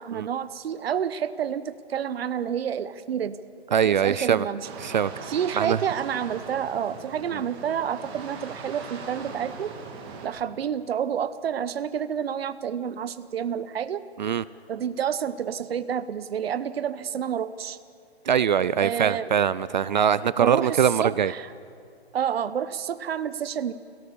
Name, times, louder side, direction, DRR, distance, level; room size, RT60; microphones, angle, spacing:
voice 1, 0.0-3.4 3.8-4.7 5.3-9.7 10.2-14.0 14.7-17.8 18.8-19.3 20.4-21.5 22.1-23.7, right 8 dB, 70° right, 13 dB, 0.9 m, -29 dB
voice 2, 3.7-4.5 4.8-5.1 5.6-5.8 14.2-14.4 18.3-21.3, right 8 dB, 45° right, 18 dB, 0.4 m, -22 dB
sound 1, 4.6-10.3, right 4 dB, 25° right, 2.5 m, -40 dB
23.5 x 17.5 x 7.0 m, 2.5 s
hypercardioid pair, 160°, 32 cm